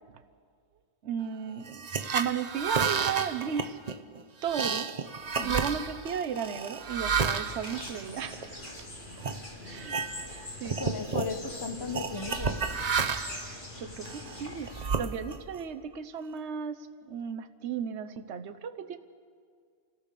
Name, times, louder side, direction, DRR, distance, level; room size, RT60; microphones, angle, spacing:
voice 1, 1.0-1.9 2.1-3.8 4.4-4.9 5.4-8.9 9.6-10.8 13.4-19.0, right 7 dB, 70° right, 9 dB, 1.2 m, -35 dB
sound 1, 1.7-8.7 9.2-9.4 9.8-10.4 10.7-11.3 11.9-13.5 14.0-15.6, right 6 dB, 40° right, 0.8 m, -31 dB
sound 2, 7.4-14.8, left 2 dB, 45° left, 2.8 m, -43 dB
voice 2, 10.8-12.6, left 4 dB, 25° left, 8 dB, 0.8 m, -36 dB
28.5 x 15.5 x 6.8 m, 2.1 s
omnidirectional pair, 1.2 m